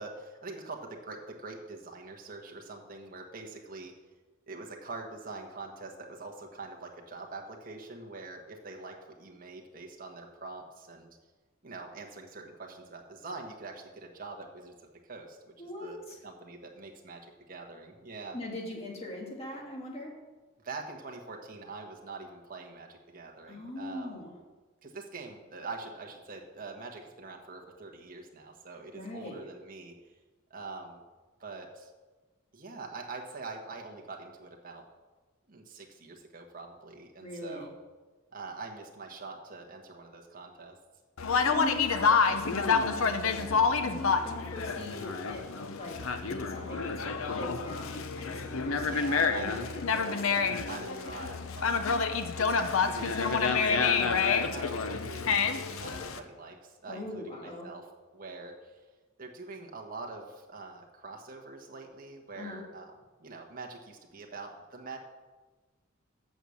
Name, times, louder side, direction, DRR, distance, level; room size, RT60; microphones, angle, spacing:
voice 1, 0.0-3.9 4.5-11.1 11.6-14.7 15.0-15.5 15.8-16.0 16.2-18.4 20.6-24.2 24.8-29.9 30.5-31.0 31.4-31.9 32.5-34.8 35.5-37.7 38.3-40.7 48.8-49.6 50.6-52.0 52.4-57.9 58.1-58.8 59.2-62.9 63.2-65.0, right 3 dB, 40° right, 1 dB, 1.3 m, -44 dB
voice 2, 15.6-16.2 18.3-20.1 23.5-24.3 28.9-29.4 37.2-37.7 41.2-50.6 56.9-57.7 62.4-62.6, left 1 dB, 30° left, -1 dB, 1.8 m, -41 dB
Conversation, 41.2-56.2, left 5 dB, 75° left, 0.7 m, -28 dB
7.9 x 6.4 x 6.9 m, 1.3 s
head